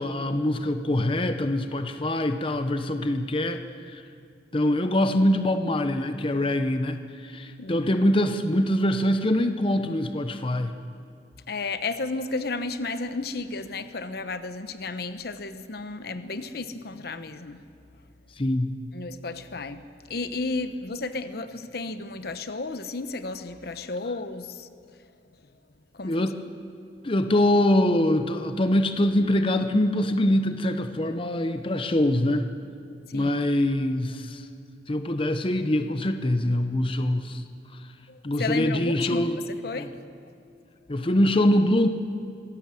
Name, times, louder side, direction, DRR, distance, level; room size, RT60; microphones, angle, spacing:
voice 1, 0.0-4.0 4.5-10.7 18.4-18.7 26.0-26.4 27.0-32.5 33.1-34.5 34.9-37.4 38.2-39.4 39.7-39.9 40.9-41.9, left 1 dB, 30° left, 8 dB, 0.8 m, -24 dB
voice 2, 11.5-17.6 18.9-19.8 20.1-24.7 26.0-26.2 33.1-33.3 38.1-39.9, left 3 dB, 60° left, 11 dB, 1.0 m, -33 dB
23.5 x 17.0 x 7.6 m, 2.5 s
head